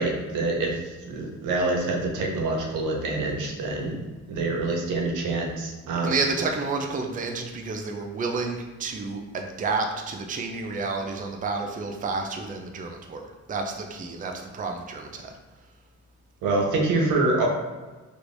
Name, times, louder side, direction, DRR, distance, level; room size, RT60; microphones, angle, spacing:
voice 1, 0.0-4.0 4.3-6.2 16.4-17.5, right 2 dB, 90° right, 1 dB, 0.7 m, -26 dB
voice 2, 6.0-15.3, right 3 dB, 25° right, 3 dB, 0.4 m, -30 dB
3.4 x 3.0 x 2.6 m, 1.2 s
cardioid pair, 90°, 30 cm